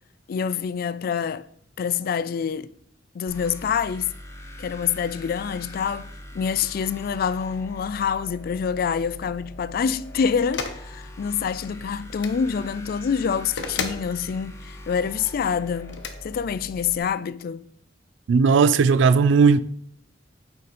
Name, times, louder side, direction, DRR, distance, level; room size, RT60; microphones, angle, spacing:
voice 1, 0.3-1.5 1.8-2.7 3.1-4.1 4.6-6.1 6.3-17.6, left 7 dB, 55° left, 0.3 m, -26 dB
sound 1, 3.3-17.0, left 1 dB, 15° left, 0.7 m, -42 dB
sound 2, 10.5-10.8 12.1-12.4 13.6-14.1 15.9-16.1, left 5 dB, 70° left, 0.7 m, -31 dB
voice 2, 18.3-19.6, right 5 dB, 75° right, 0.3 m, -16 dB
6.6 x 4.9 x 4.2 m
head